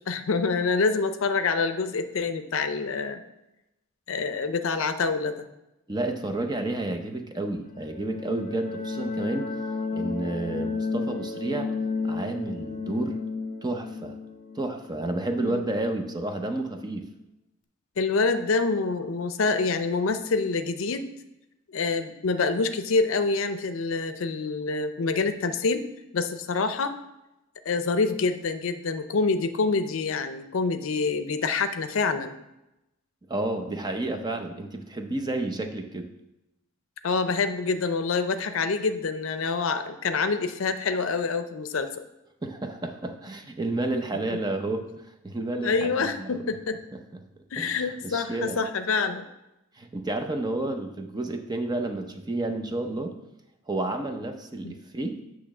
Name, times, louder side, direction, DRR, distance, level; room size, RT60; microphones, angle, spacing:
voice 1, 0.0-3.2 4.1-5.5 15.4-15.6 18.0-21.1 21.7-25.9 26.1-26.9 27.7-32.4 37.0-42.0 45.6-46.8 47.5-49.3 54.6-54.7, left 4 dB, 70° left, 10 dB, 0.5 m, -26 dB
voice 2, 5.9-9.5 9.9-11.7 12.0-13.2 13.6-14.2 14.6-17.1 33.3-36.1 42.4-46.4 46.9-47.2 47.6-48.6 49.8-53.1 53.7-55.2, right 2 dB, 20° right, 6 dB, 0.6 m, -31 dB
sound 1, 7.6-16.2, left 4 dB, 40° left, 0.8 m, -33 dB
8.4 x 3.1 x 6.0 m, 0.92 s
head